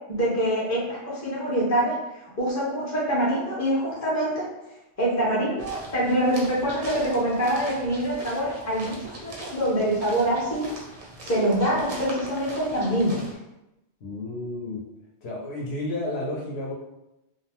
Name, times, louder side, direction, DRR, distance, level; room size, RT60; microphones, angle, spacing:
voice 1, 0.1-1.9 2.4-4.5 5.0-10.8 11.2-13.2, right 1 dB, 20° left, -6 dB, 0.6 m, -25 dB
sound 1, 5.6-13.3, right 1 dB, 45° right, 0.5 m, -41 dB
voice 2, 14.0-14.8 15.2-16.7, left 2 dB, 70° left, -3 dB, 0.9 m, -31 dB
2.7 x 2.1 x 2.8 m, 0.92 s
omnidirectional pair, 1.2 m